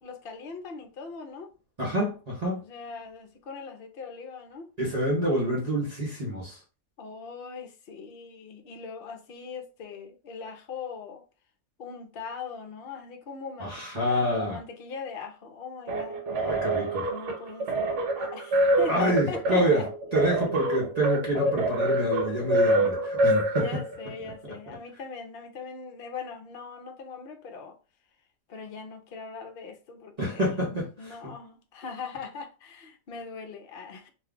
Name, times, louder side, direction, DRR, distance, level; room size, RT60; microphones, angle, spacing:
voice 1, 0.0-1.5 2.6-4.7 7.0-11.2 11.8-19.9 23.6-27.8 28.5-30.4 30.7-34.1, left 5 dB, 55° left, 0.7 m, -40 dB
voice 2, 1.8-2.6 4.8-6.6 13.6-14.6 16.3-17.1 18.9-19.8 20.1-23.6 30.2-31.3, right 1 dB, 35° right, 0.7 m, -27 dB
sound 1, 15.9-24.1, right 1 dB, 60° right, 1.0 m, -26 dB
2.6 x 2.3 x 3.6 m
omnidirectional pair, 1.5 m